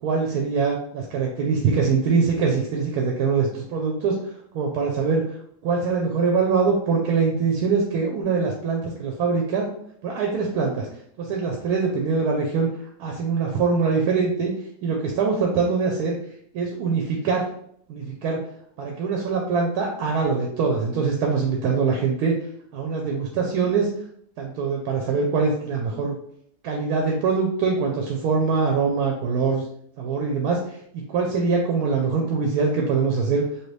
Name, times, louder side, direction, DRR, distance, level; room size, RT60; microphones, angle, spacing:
voice 1, 0.0-4.2 4.5-5.4 5.6-9.7 10.0-10.9 11.2-12.7 13.0-14.5 14.8-16.2 16.5-17.5 17.9-18.4 18.8-22.3 22.7-23.9 24.4-26.1 26.6-29.6 30.0-33.4, right 5 dB, 85° right, 1 dB, 1.1 m, -23 dB
3.1 x 2.5 x 3.1 m, 0.66 s
omnidirectional pair, 1.6 m